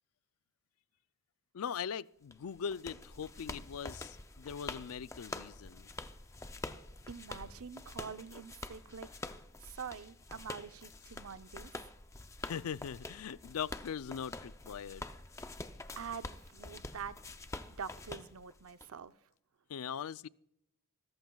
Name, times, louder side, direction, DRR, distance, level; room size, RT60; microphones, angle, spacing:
voice 1, 1.5-5.9 12.4-15.1 19.7-20.3, left 7 dB, 80° left, 0.4 m, -41 dB
sound 1, 2.3-18.9, left 2 dB, 15° left, 0.5 m, -46 dB
voice 2, 7.1-9.1 9.6-11.9 16.0-17.2 17.7-19.1, right 6 dB, 75° right, 0.6 m, -45 dB
26.0 x 14.0 x 2.3 m
head